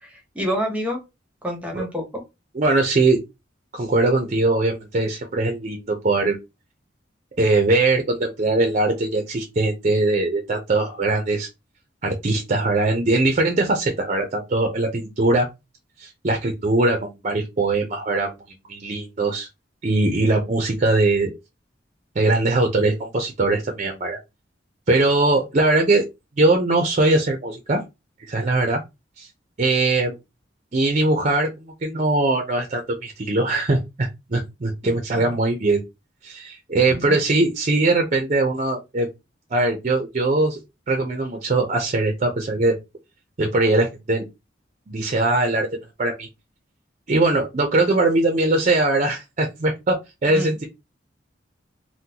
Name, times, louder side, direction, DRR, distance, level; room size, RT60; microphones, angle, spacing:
voice 1, 0.0-1.0 1.4-2.2 34.8-35.3 36.9-37.2 50.3-50.6, equal, 10° right, 2 dB, 0.9 m, -29 dB
voice 2, 2.5-3.2 3.7-6.4 7.4-11.5 12.0-15.5 16.0-18.3 18.7-19.5 19.8-21.3 22.2-24.2 24.9-26.0 26.4-27.8 28.3-28.8 29.2-29.3 29.6-30.1 30.7-35.8 36.2-39.1 39.5-40.6 40.9-42.8 43.4-44.2 44.9-45.7 46.0-46.3 47.1-50.6, right 2 dB, 40° right, 3 dB, 0.6 m, -21 dB
3.7 x 2.2 x 2.8 m, 0.23 s
head